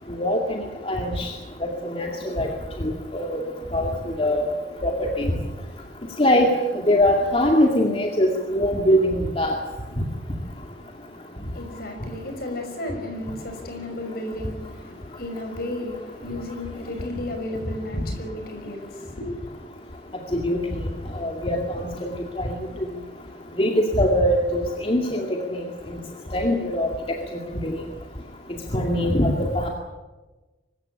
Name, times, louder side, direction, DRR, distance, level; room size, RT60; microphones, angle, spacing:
voice 1, 0.2-1.3 1.8-2.5 2.8-3.4 3.7-3.9 4.2-4.5 4.8-5.3 6.2-6.5 6.9-9.6 20.3-20.6 21.2-22.1 22.4-22.6 23.6-25.6 26.3-26.9 27.6-27.8 28.7-29.7, left 1 dB, 30° left, 2.2 m, -22 dB
voice 2, 11.5-19.6, left 1 dB, 55° left, 5.8 m, -34 dB
24.0 x 14.5 x 9.8 m
head